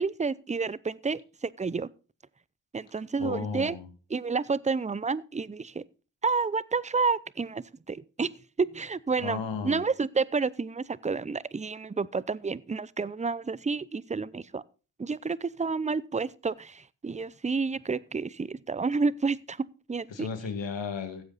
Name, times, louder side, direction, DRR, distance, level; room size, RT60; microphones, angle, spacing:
voice 1, 0.0-1.9 2.7-3.8 4.1-5.8 6.2-8.3 8.6-14.6 15.0-20.3, right 4 dB, 15° right, 0.5 m, -30 dB
voice 2, 3.2-3.9 9.2-9.8 20.1-21.2, left 5 dB, 75° left, 2.0 m, -34 dB
15.0 x 7.8 x 4.0 m
cardioid pair, 45°, 45 cm